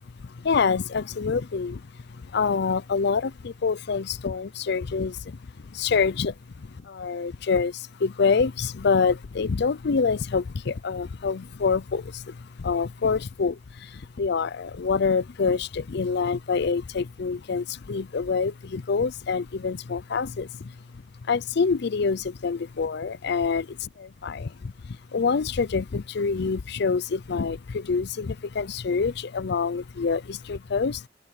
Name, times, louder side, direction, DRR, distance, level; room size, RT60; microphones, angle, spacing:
voice 1, 0.0-31.1, left 5 dB, 65° left, 0.5 m, -26 dB
head